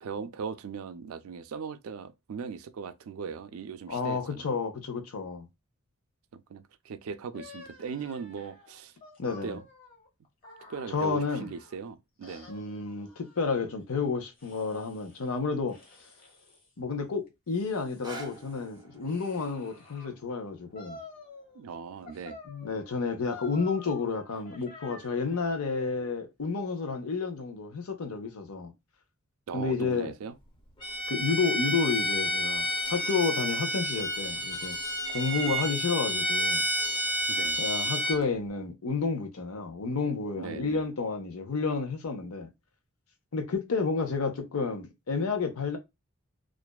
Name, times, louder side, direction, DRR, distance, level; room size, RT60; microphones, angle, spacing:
voice 1, 0.0-4.6 6.3-8.9 9.3-9.7 10.7-12.5 21.5-22.4 29.5-30.3 37.3-37.6 40.4-40.8, right 6 dB, 70° right, 0.4 m, -39 dB
voice 2, 3.9-5.5 9.2-9.6 10.9-11.5 12.5-15.8 16.8-21.0 22.5-28.7 29.5-30.1 31.1-34.8 35.1-36.6 37.6-42.5 43.3-45.8, left 4 dB, 85° left, 0.7 m, -31 dB
sound 1, 7.3-11.8 12.2-13.7 14.4-15.3 15.7-16.7 17.3-20.1 20.7-21.7 22.1-25.5, left 4 dB, 45° left, 1.0 m, -50 dB
sound 2, 17.8-23.9 24.5-24.6, right 3 dB, 20° right, 0.5 m, -51 dB
Bowed string instrument, 30.8-38.2, equal, 25° left, 0.6 m, -30 dB
2.5 x 2.2 x 2.3 m
head